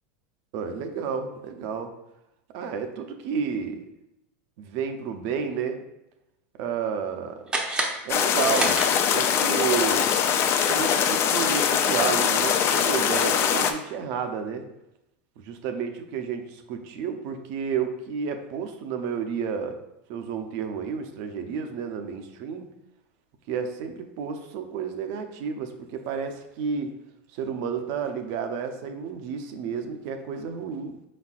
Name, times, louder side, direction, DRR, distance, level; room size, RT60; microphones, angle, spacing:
voice 1, 0.5-1.9 2.5-3.9 4.6-5.8 6.6-7.4 8.0-8.8 9.1-10.1 10.7-14.6 15.4-19.8 20.1-22.7 23.5-26.9 27.3-30.9, right 6 dB, 55° right, 6 dB, 0.6 m, -31 dB
sound 1, 7.5-9.4, right 2 dB, 10° right, 0.6 m, -30 dB
sound 2, 8.1-13.7, left 8 dB, 40° left, 0.4 m, -22 dB
5.2 x 4.1 x 2.4 m, 0.88 s
supercardioid pair, 125°, 7 cm